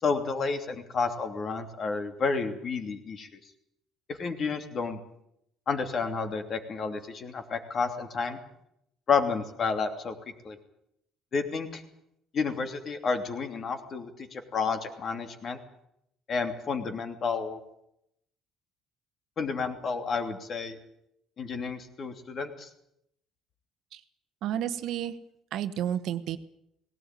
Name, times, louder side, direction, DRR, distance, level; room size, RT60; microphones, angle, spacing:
voice 1, 0.0-3.3 4.1-5.0 5.7-8.4 9.1-10.1 10.4-10.6 11.3-11.8 12.3-15.6 16.3-17.6 19.4-20.8 21.4-22.7, left 5 dB, 40° left, 7 dB, 2.9 m, -30 dB
voice 2, 24.4-25.1 25.5-26.4, right 10 dB, 65° right, 11 dB, 1.3 m, -31 dB
18.5 x 18.0 x 9.2 m, 0.78 s
cardioid pair, 130°, 0 cm